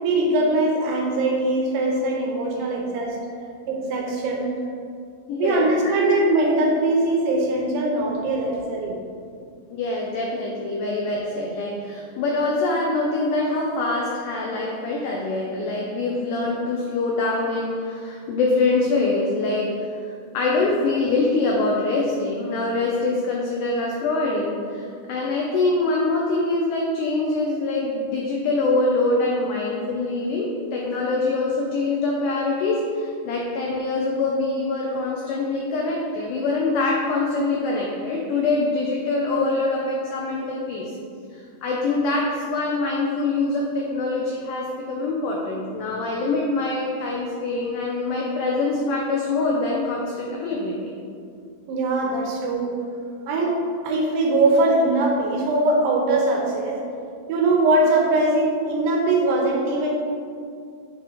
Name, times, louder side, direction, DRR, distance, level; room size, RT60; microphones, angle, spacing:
voice 1, 0.0-3.2 3.7-4.5 5.4-9.0 51.7-52.7 53.3-53.6 53.8-56.8 57.3-59.9, right 2 dB, 85° right, -1 dB, 1.8 m, -21 dB
voice 2, 5.3-5.9 9.7-19.7 20.0-40.9 41.3-50.8, left 3 dB, 90° left, -2 dB, 1.8 m, -24 dB
7.7 x 3.0 x 4.8 m, 2.3 s
omnidirectional pair, 4.4 m